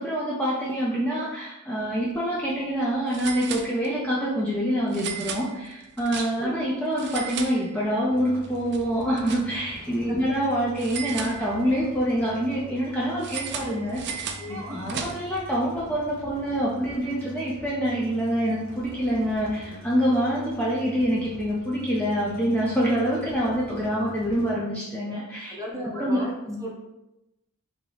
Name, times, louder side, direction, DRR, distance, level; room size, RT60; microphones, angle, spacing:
voice 1, 0.0-25.6 25.9-26.6, equal, 5° left, -6 dB, 0.5 m, -26 dB
sound 1, 1.9-2.1 2.4-2.5 3.1-4.2 4.9-6.6 6.9-8.1 8.4-9.8 10.8-11.9 13.2-15.4, right 7 dB, 50° right, 0.4 m, -36 dB
voice 2, 6.4-6.7 14.4-14.8 24.4-24.5 25.5-26.3 26.6-26.7, equal, 15° right, -3 dB, 0.8 m, -35 dB
sound 2, 8.1-24.5, left 1 dB, 40° left, 0.9 m, -45 dB
3.1 x 2.9 x 3.8 m, 0.96 s
head